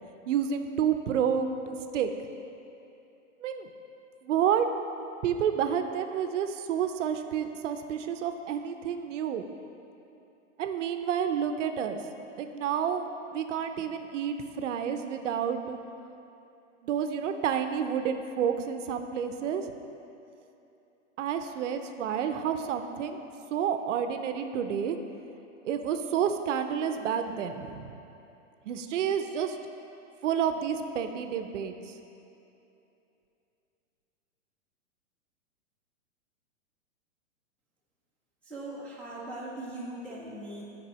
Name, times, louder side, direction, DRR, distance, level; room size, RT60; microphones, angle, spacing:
voice 1, 0.3-2.1 3.4-3.7 4.2-4.7 5.2-9.4 10.6-12.0 12.4-15.8 16.8-19.6 21.2-23.2 23.5-25.0 25.6-28.0 28.7-29.6 30.2-31.9, right 8 dB, 65° right, 7 dB, 0.6 m, -29 dB
voice 2, 38.5-40.6, right 1 dB, 5° left, -7 dB, 0.4 m, -40 dB
8.9 x 5.3 x 3.1 m, 2.8 s
hypercardioid pair, 135°, 39 cm